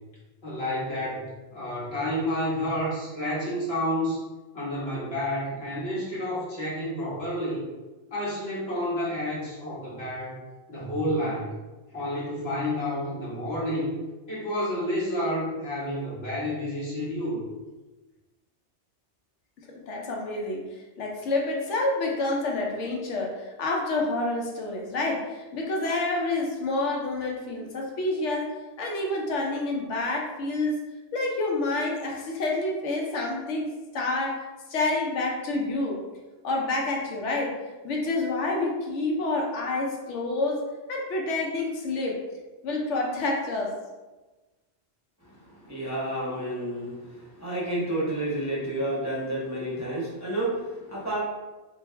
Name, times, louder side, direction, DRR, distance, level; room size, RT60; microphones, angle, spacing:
voice 1, 0.4-4.2 4.5-7.6 8.1-10.4 10.7-11.5 11.9-14.0 14.3-17.4, left 1 dB, 60° left, -8 dB, 1.6 m, -30 dB
voice 2, 19.6-28.5 28.8-30.8 31.1-36.0 36.4-37.6 37.8-40.6 40.9-42.2 42.6-43.7, left 2 dB, 85° left, -1 dB, 1.0 m, -28 dB
voice 3, 45.2-51.2, right 1 dB, 20° right, -7 dB, 0.6 m, -30 dB
3.3 x 2.5 x 3.3 m, 1.2 s
omnidirectional pair, 1.2 m